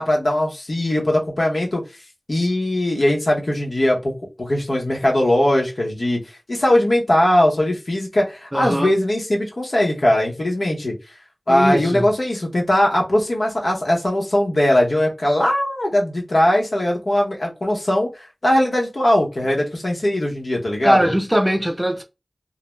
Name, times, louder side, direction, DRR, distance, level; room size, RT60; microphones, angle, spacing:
voice 1, 0.0-1.8 2.3-4.1 4.4-6.2 6.5-10.9 11.5-21.1, left 1 dB, 75° left, 0.8 m, -20 dB
voice 2, 8.5-8.9 11.5-12.1 20.8-22.0, equal, 15° right, 0.5 m, -20 dB
2.4 x 2.1 x 3.1 m
wide cardioid pair, 45°, 0 cm